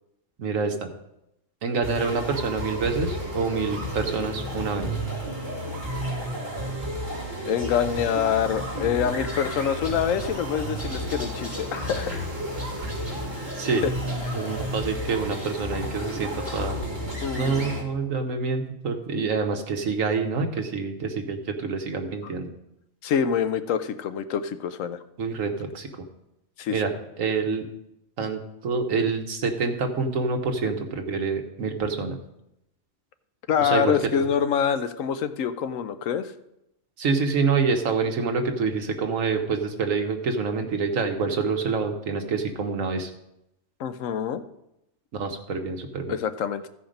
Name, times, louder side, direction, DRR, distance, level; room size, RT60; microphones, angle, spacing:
voice 1, 0.4-0.9 1.6-4.9 13.6-13.8 14.3-16.8 17.4-22.5 25.2-25.9 26.7-26.9 27.2-27.7 28.2-32.2 33.6-34.3 37.0-43.1 45.1-46.1, right 4 dB, 90° right, 5 dB, 1.5 m, -27 dB
sound 1, 1.8-17.8, equal, 35° right, 2.7 m, -32 dB
voice 2, 7.5-12.3 13.7-13.9 14.3-14.4 17.2-17.8 23.0-25.0 26.6-26.8 33.5-36.3 43.8-44.4 46.1-46.7, left 8 dB, 90° left, 11 dB, 1.1 m, -26 dB
sound 2, 9.0-16.6, equal, 20° right, 3.9 m, -44 dB
14.5 x 5.0 x 5.1 m, 0.84 s
omnidirectional pair, 1.3 m